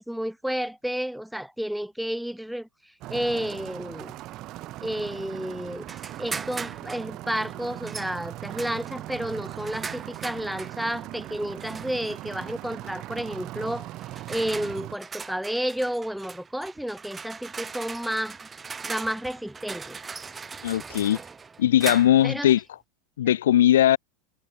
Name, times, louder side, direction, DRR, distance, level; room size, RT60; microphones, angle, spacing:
voice 1, 0.0-2.7 3.1-4.2 4.8-5.9 6.2-13.9 14.3-18.4 18.8-20.0 22.2-22.5, equal, ahead, 2.3 m, -31 dB
sound 1, 3.0-15.0, right 16 dB, 45° right, 1.8 m, -39 dB
sound 2, 5.9-7.1 7.9-8.1 8.6-10.8 11.6-12.1 13.2-13.4 14.0-22.3, right 5 dB, 20° right, 7.5 m, -39 dB
voice 2, 20.6-21.2 21.6-22.6 23.2-24.0, left 12 dB, 70° left, 0.3 m, -19 dB
figure-of-eight pair, 85°, 0 cm